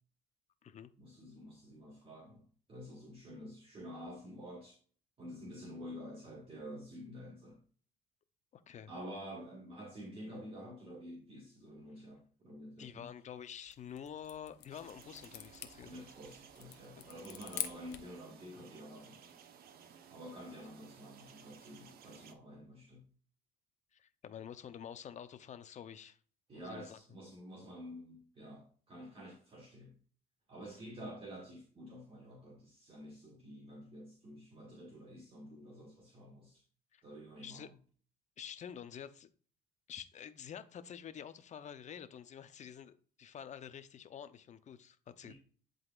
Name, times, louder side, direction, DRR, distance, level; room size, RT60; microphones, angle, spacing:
voice 1, 1.0-2.4 2.7-4.8 5.2-7.6 8.9-13.1 15.9-19.2 20.1-23.0 26.5-29.9 30.5-36.6 37.0-37.7 45.2-45.3, equal, 35° right, 1.8 m, -49 dB
voice 2, 8.5-8.9 12.8-16.1 17.0-17.2 23.9-26.2 26.6-27.0 36.9-37.0 37.4-37.7 38.4-39.3 39.9-45.3, left 8 dB, 45° left, 0.7 m, -48 dB
sound 1, 13.5-18.2, left 12 dB, 80° left, 0.8 m, -46 dB
sound 2, 14.7-22.3, right 7 dB, 65° right, 0.9 m, -58 dB
11.0 x 4.0 x 2.4 m
cardioid pair, 110°, 17 cm